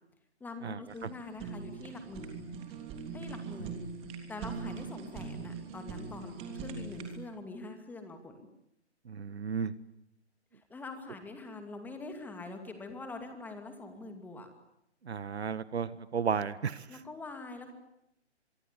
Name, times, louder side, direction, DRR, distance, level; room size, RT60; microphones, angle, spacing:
voice 1, 0.4-2.4 3.1-3.9 4.3-8.5 10.5-14.5 16.9-17.7, left 3 dB, 5° left, 6 dB, 2.5 m, -44 dB
Fire, 0.9-7.2, right 5 dB, 15° right, 3.4 m, -42 dB
voice 2, 9.1-9.7 15.0-16.8, right 6 dB, 65° right, 16 dB, 1.6 m, -33 dB
24.0 x 24.0 x 9.9 m, 0.82 s
hypercardioid pair, 150°, 34 cm